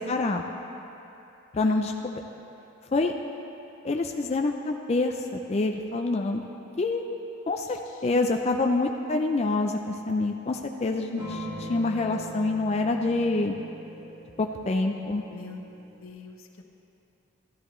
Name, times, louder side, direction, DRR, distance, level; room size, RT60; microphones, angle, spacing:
voice 1, 0.1-0.4 1.5-2.2 2.9-3.1 3.8-6.4 6.8-7.0 7.5-7.8 8.0-13.5 14.4-15.2, left 3 dB, 30° left, 3 dB, 0.3 m, -26 dB
voice 2, 8.1-8.5 15.3-15.6 16.0-16.6, left 3 dB, 85° left, 3 dB, 0.8 m, -42 dB
sound 1, 11.2-16.1, equal, 20° right, 2.0 m, -41 dB
13.5 x 10.5 x 3.1 m, 2.9 s
head